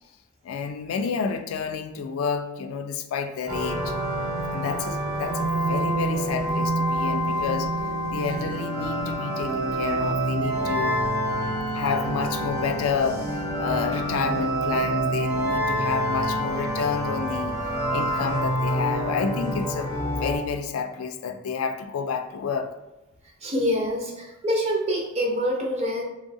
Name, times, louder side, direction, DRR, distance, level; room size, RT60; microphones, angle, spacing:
voice 1, 0.4-3.9 4.5-7.7 8.1-11.0 11.7-17.6 17.9-19.9 20.2-22.7, left 5 dB, 80° left, 0.3 m, -29 dB
sound 1, 3.5-20.4, right 1 dB, 50° right, 1.5 m, -27 dB
voice 2, 23.4-26.0, equal, 30° right, 0.6 m, -25 dB
3.1 x 2.7 x 2.7 m
head